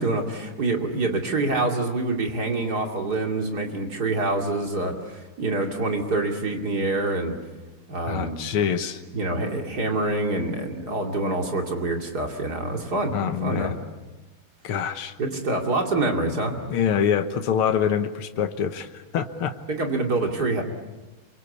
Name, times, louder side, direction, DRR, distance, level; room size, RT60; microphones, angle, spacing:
voice 1, 0.0-7.4 7.9-8.4 9.1-13.1 13.4-13.7 15.2-16.6 19.7-20.6, right 2 dB, 45° right, 2 dB, 3.0 m, -26 dB
voice 2, 8.1-9.0 13.1-13.8 14.6-15.1 16.7-19.5, left 8 dB, 75° left, 8 dB, 2.1 m, -25 dB
28.0 x 24.0 x 8.4 m, 1.2 s
omnidirectional pair, 2.4 m